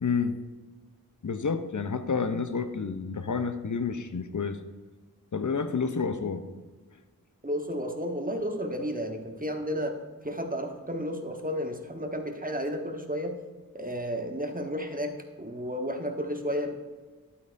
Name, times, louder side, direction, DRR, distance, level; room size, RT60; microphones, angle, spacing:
voice 1, 0.0-0.3 1.2-4.6 5.3-6.4, left 5 dB, 55° left, 10 dB, 0.7 m, -29 dB
voice 2, 7.4-10.0 10.2-13.4 13.7-16.8, equal, 25° right, 4 dB, 1.2 m, -32 dB
11.5 x 8.5 x 2.6 m, 1.3 s
wide cardioid pair, 40°, 36 cm